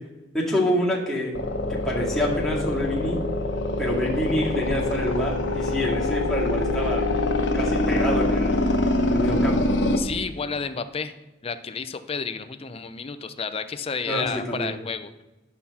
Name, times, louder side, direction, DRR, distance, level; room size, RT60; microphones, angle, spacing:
voice 1, 0.3-1.3 1.7-3.2 3.8-7.1 7.5-8.6 9.1-9.6 14.1-14.7, left 1 dB, ahead, -5 dB, 2.1 m, -26 dB
sound 1, 1.3-10.0, left 2 dB, 75° left, 1.1 m, -24 dB
voice 2, 10.0-11.1 11.4-15.2, left 5 dB, 30° left, 10 dB, 0.5 m, -31 dB
11.5 x 5.8 x 4.2 m, 1.1 s
head